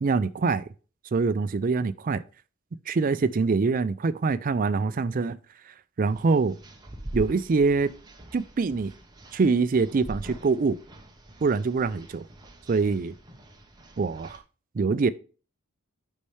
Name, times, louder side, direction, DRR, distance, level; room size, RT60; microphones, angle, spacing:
voice 1, 0.0-0.7 1.1-2.2 2.9-5.4 6.0-6.6 7.1-7.9 8.3-8.9 9.3-10.8 11.4-12.2 12.7-13.1 14.0-14.4 14.7-15.1, right 4 dB, 40° right, 0.4 m, -24 dB
sound 1, 6.0-14.4, right 1 dB, 20° right, 0.9 m, -44 dB
8.5 x 5.5 x 3.3 m
head